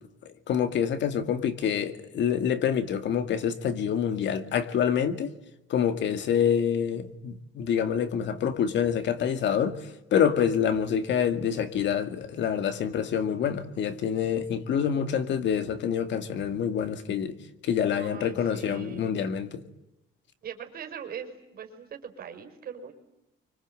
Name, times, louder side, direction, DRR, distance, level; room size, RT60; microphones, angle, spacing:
voice 1, 0.3-5.3 5.7-9.8 10.1-17.3 17.6-19.5, left 8 dB, 60° left, 2.1 m, -26 dB
voice 2, 18.0-19.1 20.4-22.9, right 7 dB, 45° right, 4.9 m, -41 dB
29.0 x 25.0 x 7.8 m
cardioid pair, 175°, 21 cm